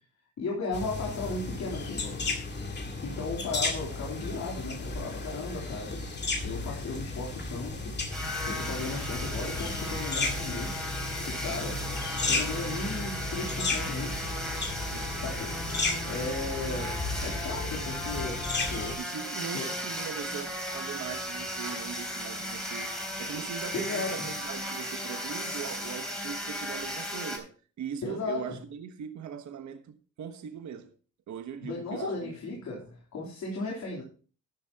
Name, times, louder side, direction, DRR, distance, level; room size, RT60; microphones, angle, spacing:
voice 1, 0.4-2.3 3.0-6.0 6.4-8.0 8.5-10.8 11.3-11.8 12.3-14.2 15.2-15.6 16.0-19.0 19.5-19.7 23.7-24.3 28.0-28.6 31.6-34.0, left 3 dB, 70° left, 3.5 m, -36 dB
sound 1, 0.7-18.9, left 3 dB, 35° left, 2.2 m, -34 dB
sound 2, 8.1-27.4, equal, ahead, 3.7 m, -36 dB
voice 2, 19.0-27.5 27.8-30.9 31.3-32.3, right 8 dB, 70° right, 1.3 m, -40 dB
14.0 x 10.5 x 2.9 m
cardioid pair, 120°, 30 cm